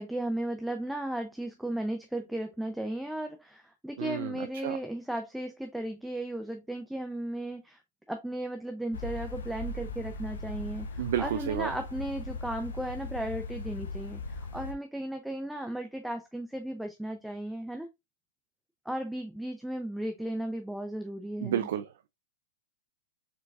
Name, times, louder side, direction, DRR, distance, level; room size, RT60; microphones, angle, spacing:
voice 1, 0.0-7.8 8.1-17.9 18.9-21.7, right 1 dB, ahead, 0.5 m, -35 dB
voice 2, 4.0-4.8 11.0-11.7 21.4-22.1, right 10 dB, 65° right, 0.4 m, -32 dB
sound 1, 8.9-14.7, left 2 dB, 75° left, 0.7 m, -39 dB
4.6 x 3.9 x 2.4 m
hypercardioid pair, 110°, 0 cm